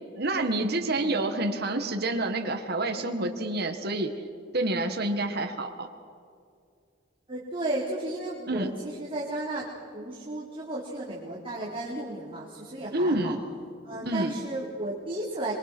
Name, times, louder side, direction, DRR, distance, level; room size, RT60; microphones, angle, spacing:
voice 1, 0.2-4.1 4.5-5.9 8.5-8.7 12.9-13.4 14.1-14.3, right 2 dB, 55° right, 5 dB, 1.8 m, -28 dB
voice 2, 0.9-1.2 7.3-9.7 9.9-13.4 13.8-15.5, right 2 dB, 30° right, -6 dB, 3.7 m, -34 dB
26.5 x 23.5 x 6.2 m, 2.3 s
head